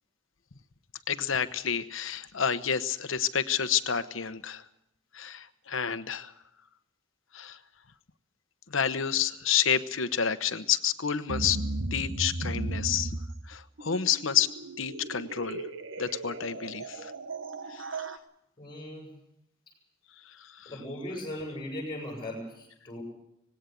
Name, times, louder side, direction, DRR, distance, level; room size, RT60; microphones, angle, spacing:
voice 1, 1.1-4.6 5.1-6.3 7.3-7.6 8.7-11.6 11.9-13.2 13.5-14.5 14.8-15.7 16.0-17.1 17.7-17.9 20.2-20.7, left 8 dB, 75° left, 12 dB, 1.0 m, -29 dB
sound 1, 11.3-18.2, right 2 dB, 70° right, 1.2 m, -36 dB
voice 2, 18.6-19.1 20.6-23.0, left 1 dB, 25° left, 1 dB, 7.9 m, -38 dB
19.5 x 17.0 x 8.4 m, 0.80 s
head